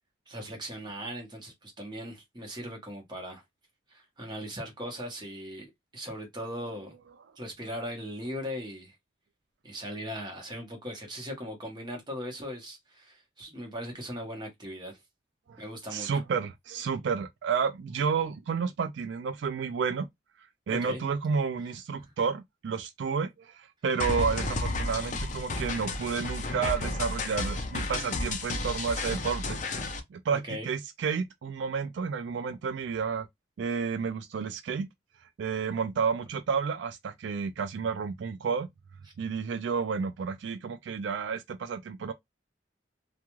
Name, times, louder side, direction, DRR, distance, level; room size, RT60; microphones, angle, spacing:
voice 1, 0.3-3.4 3.9-5.7 5.9-6.9 7.4-8.9 9.6-15.0 15.6-16.2 20.7-21.0 30.4-30.7, equal, 25° right, 1.0 m, -39 dB
voice 2, 15.9-20.1 20.7-29.6 30.1-33.3 33.6-34.9 35.4-38.7 39.2-42.1, right 6 dB, 75° right, 0.3 m, -31 dB
sound 1, 24.0-30.0, left 2 dB, 40° left, 0.5 m, -32 dB
2.3 x 2.3 x 3.0 m
head